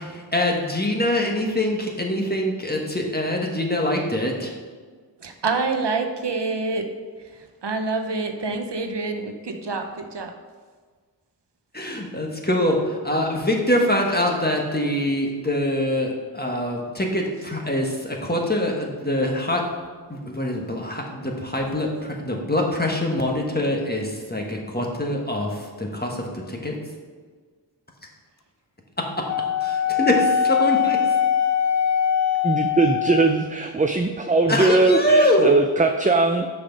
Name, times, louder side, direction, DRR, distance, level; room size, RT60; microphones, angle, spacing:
voice 1, 0.0-4.5 11.7-19.6 20.1-26.7 29.6-31.0 34.5-35.5, left 1 dB, 20° left, 0 dB, 1.4 m, -24 dB
voice 2, 5.2-6.9 7.6-10.3, right 3 dB, 75° right, 5 dB, 0.8 m, -26 dB
Wind instrument woodwind instrument, 29.3-33.4, left 8 dB, 40° left, 0.7 m, -22 dB
voice 3, 32.4-36.5, right 3 dB, 20° right, 5 dB, 0.4 m, -20 dB
6.5 x 6.1 x 5.2 m, 1.5 s
wide cardioid pair, 50°, 42 cm